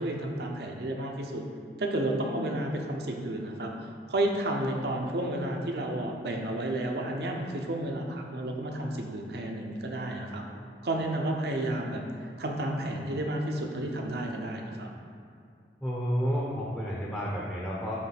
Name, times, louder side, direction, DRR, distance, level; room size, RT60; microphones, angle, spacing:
voice 1, 0.0-1.4 1.8-10.4 10.8-12.0 12.4-14.9, right 1 dB, 65° right, 1 dB, 0.8 m, -31 dB
voice 2, 15.8-18.0, equal, 10° left, -5 dB, 0.7 m, -31 dB
7.7 x 3.2 x 5.9 m, 2.4 s
head